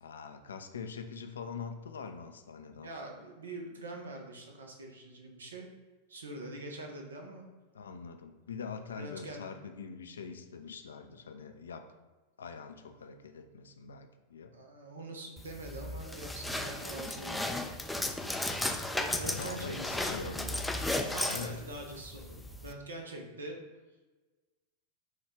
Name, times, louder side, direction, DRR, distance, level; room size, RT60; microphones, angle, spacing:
voice 1, 0.0-2.9 7.7-11.9 12.4-14.5 16.7-16.9 19.2-20.9 21.3-21.6, left 5 dB, 70° left, 7 dB, 0.4 m, -44 dB
voice 2, 2.8-5.7 6.1-7.5 9.0-9.5 14.5-17.7 18.9-20.3 21.1-23.6, right 2 dB, 70° right, 2 dB, 0.8 m, -44 dB
sound 1, 15.4-22.7, left 1 dB, 5° left, 0.4 m, -35 dB
6.2 x 2.4 x 3.4 m, 1.2 s
figure-of-eight pair, 90°, 0 cm